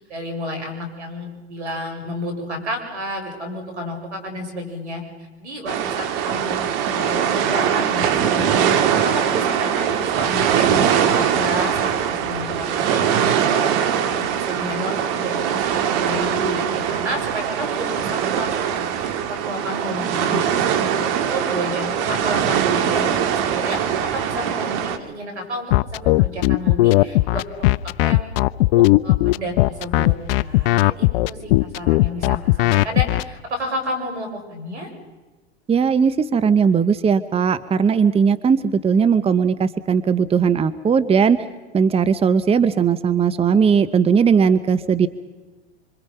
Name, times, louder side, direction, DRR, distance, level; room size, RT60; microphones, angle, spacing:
voice 1, 0.0-5.0 5.4-27.7 28.0-28.3 28.7-34.9, equal, 90° right, 4 dB, 7.1 m, -31 dB
sound 1, 5.7-25.0, right 8 dB, 55° right, 2.5 m, -21 dB
sound 2, 25.7-33.2, left 19 dB, 60° left, 0.7 m, -16 dB
voice 2, 35.7-41.4 41.7-45.1, right 6 dB, 15° right, 13 dB, 1.0 m, -18 dB
26.5 x 26.0 x 5.6 m, 1.2 s
hypercardioid pair, 100°, 33 cm